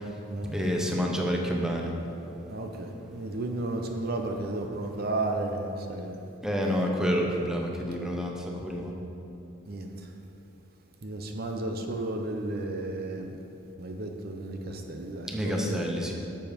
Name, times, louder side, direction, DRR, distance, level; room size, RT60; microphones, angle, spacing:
voice 1, 0.0-1.9 6.4-8.9 15.3-16.1, equal, 5° right, 0 dB, 0.7 m, -29 dB
voice 2, 2.4-6.2 9.7-10.1 11.0-13.3 13.8-15.9, right 2 dB, 50° right, 4 dB, 0.6 m, -33 dB
7.7 x 7.1 x 5.1 m, 2.9 s
head